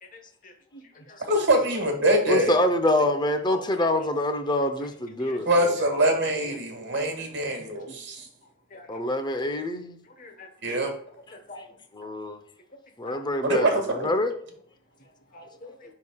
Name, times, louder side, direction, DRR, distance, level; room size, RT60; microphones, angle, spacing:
voice 1, 0.4-1.2 3.5-3.6 4.0-4.1 5.2-5.4 6.9-7.1 7.4-7.5 7.9-8.0 8.7-8.9 10.2-10.5 11.5-11.6 13.1-13.2 15.3-15.7, left 2 dB, 45° left, 1.2 m, -43 dB
voice 2, 1.3-2.5 5.4-8.3 10.6-10.9 13.4-14.1, right 1 dB, 60° right, 1.8 m, -24 dB
voice 3, 2.3-5.8 8.9-10.0 11.9-12.4 13.0-14.3, left 1 dB, 25° left, 0.7 m, -26 dB
11.0 x 3.8 x 2.3 m
head